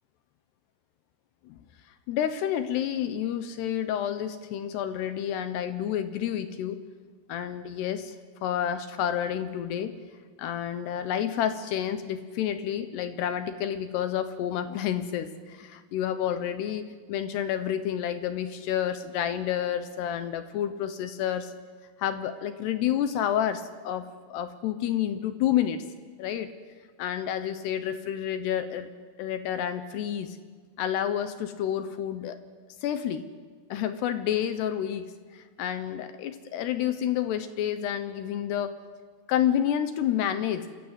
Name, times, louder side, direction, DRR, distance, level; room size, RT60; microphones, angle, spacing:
voice 1, 2.1-6.8 7.3-8.1 8.4-9.9 10.4-16.8 17.1-21.5 22.0-25.8 26.2-26.5 27.0-28.9 29.2-30.4 30.8-32.4 32.8-33.3 33.7-38.7 39.3-40.7, left 10 dB, 75° left, 10 dB, 2.7 m, -29 dB
27.0 x 21.5 x 8.2 m, 1.5 s
omnidirectional pair, 5.7 m